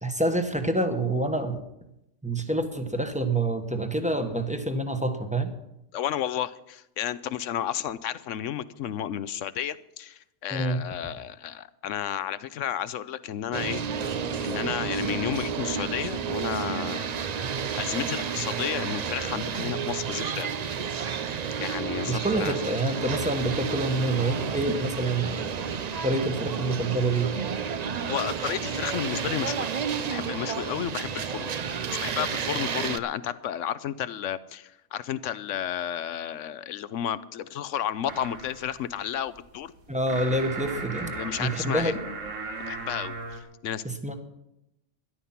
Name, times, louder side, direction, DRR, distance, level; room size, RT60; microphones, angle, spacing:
voice 1, 0.0-1.6 2.2-5.5 10.5-10.8 22.1-25.5 26.0-27.5 39.9-41.1 41.4-41.9 43.8-44.1, right 2 dB, 5° right, 6 dB, 1.1 m, -27 dB
voice 2, 5.9-13.8 14.4-17.1 17.7-20.6 21.6-22.6 28.1-29.7 30.1-39.7 41.1-41.9 42.7-43.8, left 10 dB, 80° left, 16 dB, 1.0 m, -32 dB
sound 1, 13.5-33.0, right 6 dB, 50° right, 0.5 m, -31 dB
sound 2, 38.1-43.4, right 3 dB, 85° right, 1.8 m, -37 dB
13.0 x 11.0 x 5.8 m, 0.86 s
omnidirectional pair, 1.3 m